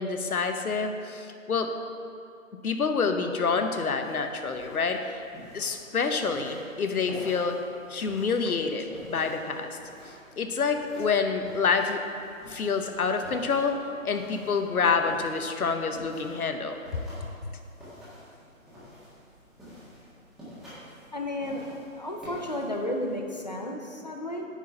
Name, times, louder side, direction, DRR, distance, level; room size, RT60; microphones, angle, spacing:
voice 1, 0.0-1.7 2.6-5.2 5.5-7.6 7.9-9.8 10.4-12.0 12.5-16.8, left 5 dB, 90° left, 6 dB, 0.9 m, -27 dB
sound 1, 4.0-23.2, equal, ahead, 1.5 m, -48 dB
voice 2, 21.1-24.5, left 1 dB, 30° left, 2 dB, 0.4 m, -33 dB
9.3 x 4.2 x 5.6 m, 2.4 s
hypercardioid pair, 155°, 42 cm